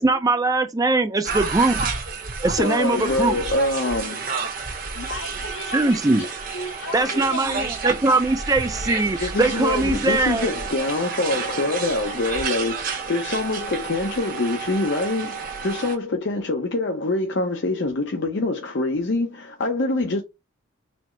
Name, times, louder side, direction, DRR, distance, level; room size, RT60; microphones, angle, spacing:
voice 1, 0.0-1.9 2.4-3.4 5.7-6.2 6.9-10.5, right 3 dB, 15° right, 0.4 m, -21 dB
sound 1, 1.2-16.0, right 4 dB, 45° right, 0.9 m, -30 dB
voice 2, 2.6-4.3 9.2-20.2, left 2 dB, 60° left, 0.6 m, -25 dB
voice 3, 4.9-7.9, left 2 dB, 80° left, 1.5 m, -35 dB
4.2 x 2.0 x 4.3 m
head